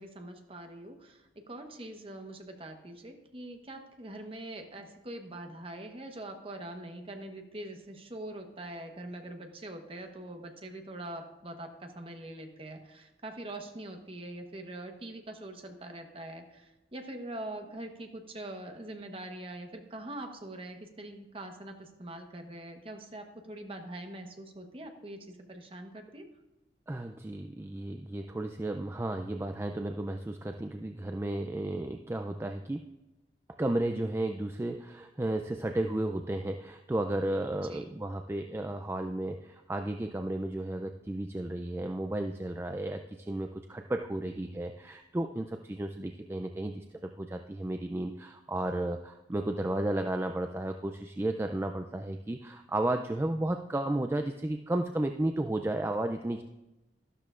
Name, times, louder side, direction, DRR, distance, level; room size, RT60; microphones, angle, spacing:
voice 1, 0.0-26.3 37.6-37.9, right 1 dB, 30° right, 4 dB, 1.1 m, -43 dB
voice 2, 26.9-32.9 33.6-56.4, right 1 dB, 15° right, 6 dB, 0.3 m, -33 dB
12.5 x 12.0 x 2.5 m, 0.99 s
head